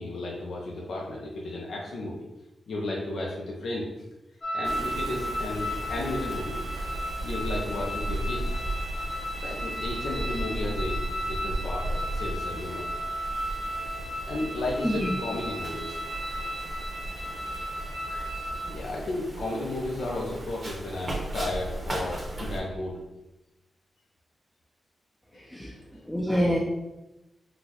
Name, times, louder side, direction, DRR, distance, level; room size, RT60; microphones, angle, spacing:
voice 1, 0.0-2.1 2.7-3.9 4.5-6.6 7.2-8.5 9.4-12.9 13.8-16.0 18.6-23.0 25.3-26.0, left 2 dB, 80° left, -3 dB, 0.5 m, -34 dB
sound 1, 4.4-18.7, equal, 50° left, 0.9 m, -35 dB
Wind, 4.6-22.6, right 1 dB, 40° right, 0.8 m, -36 dB
voice 2, 14.8-15.1 25.3-25.7 26.1-26.6, equal, 5° left, -2 dB, 0.4 m, -27 dB
4.0 x 2.1 x 2.9 m, 0.98 s
cardioid pair, 60°, 0 cm